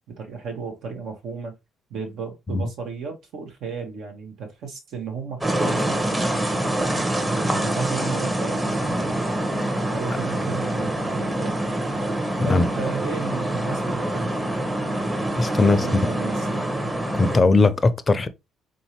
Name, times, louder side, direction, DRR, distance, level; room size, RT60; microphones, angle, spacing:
voice 1, 0.1-1.5 1.9-6.3 7.2-9.0 9.8-11.6 12.4-14.3 15.6-16.7, right 5 dB, 75° right, 1.0 m, -34 dB
sound 1, 5.4-17.4, right 1 dB, 20° right, 0.9 m, -25 dB
voice 2, 15.3-15.9 17.1-18.3, left 3 dB, 30° left, 0.5 m, -19 dB
3.8 x 2.7 x 2.9 m
supercardioid pair, 75°, 0 cm